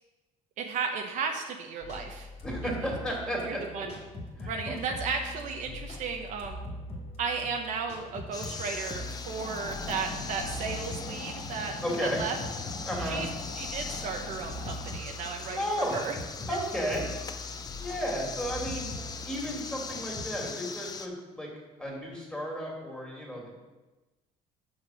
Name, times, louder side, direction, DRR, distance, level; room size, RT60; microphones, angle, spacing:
voice 1, 0.6-2.3 3.4-3.9 4.5-6.6 7.2-12.4 13.0-13.3 13.6-15.6 15.9-16.1 17.5-17.6, right 5 dB, 65° right, 3 dB, 1.0 m, -34 dB
sound 1, 1.8-20.4, left 1 dB, 50° left, 2.3 m, -42 dB
voice 2, 2.4-3.6 4.4-4.7 11.8-12.2 12.8-13.2 15.6-16.0 16.5-17.0 17.8-18.9 19.2-21.5 21.8-23.6, equal, 5° left, -3 dB, 2.8 m, -33 dB
sound 2, 8.3-21.1, left 5 dB, 25° left, 0.6 m, -41 dB
sound 3, 9.3-14.9, left 3 dB, 80° left, 1.8 m, -41 dB
7.5 x 6.0 x 6.5 m, 1.1 s
cardioid pair, 135°, 14 cm